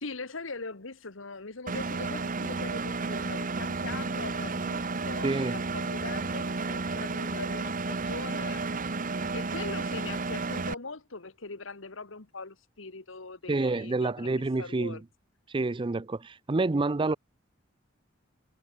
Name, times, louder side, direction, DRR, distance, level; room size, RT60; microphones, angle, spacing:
voice 1, 0.0-8.7 9.3-15.0, left 3 dB, 80° left, 1.7 m, -41 dB
Engine, 1.7-10.7, right 3 dB, 45° right, 1.2 m, -32 dB
voice 2, 5.2-5.6 13.5-15.0 15.5-17.2, right 3 dB, 25° right, 0.5 m, -28 dB
head